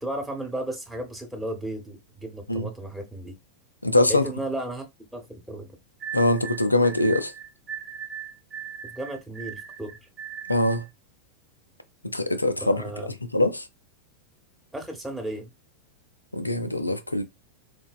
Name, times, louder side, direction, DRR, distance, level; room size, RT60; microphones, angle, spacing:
voice 1, 0.0-3.3 4.1-4.8 5.1-5.7 8.8-9.9 12.6-13.1 14.7-15.5, right 1 dB, 5° right, 0.8 m, -34 dB
voice 2, 3.8-4.3 6.1-7.3 10.5-10.8 12.0-12.8 13.2-13.7 16.3-17.2, left 1 dB, 85° left, 0.4 m, -23 dB
sound 1, 6.0-10.9, right 8 dB, 25° right, 0.5 m, -38 dB
3.9 x 2.0 x 2.2 m
figure-of-eight pair, 90°, 0 cm